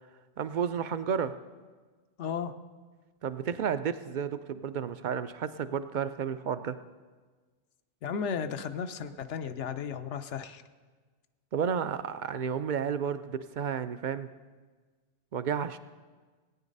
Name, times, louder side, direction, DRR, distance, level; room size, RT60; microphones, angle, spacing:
voice 1, 0.4-1.3 3.2-6.8 11.5-14.3 15.3-15.8, right 7 dB, 60° right, 12 dB, 0.5 m, -32 dB
voice 2, 2.2-2.5 8.0-10.6, left 6 dB, 80° left, 9 dB, 1.0 m, -34 dB
18.0 x 9.0 x 5.3 m, 1.4 s
omnidirectional pair, 1.2 m